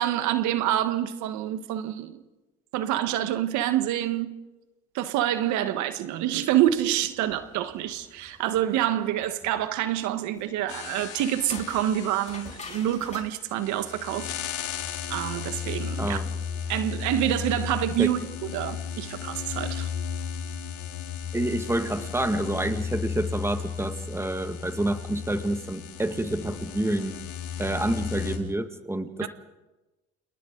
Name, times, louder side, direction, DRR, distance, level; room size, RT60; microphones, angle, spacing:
voice 1, 0.0-2.2 2.7-4.4 4.9-14.3 15.1-16.2 16.7-19.9 29.2-29.3, right 12 dB, 70° right, 1.5 m, -27 dB
sound 1, 6.5-13.3, left 3 dB, 25° left, 4.8 m, -47 dB
sound 2, 10.7-28.4, left 7 dB, 75° left, 3.8 m, -35 dB
voice 2, 16.0-16.3 18.0-18.1 21.3-27.1 27.6-29.3, right 1 dB, 10° right, 2.1 m, -28 dB
30.0 x 28.0 x 4.0 m
supercardioid pair, 80°, 30 cm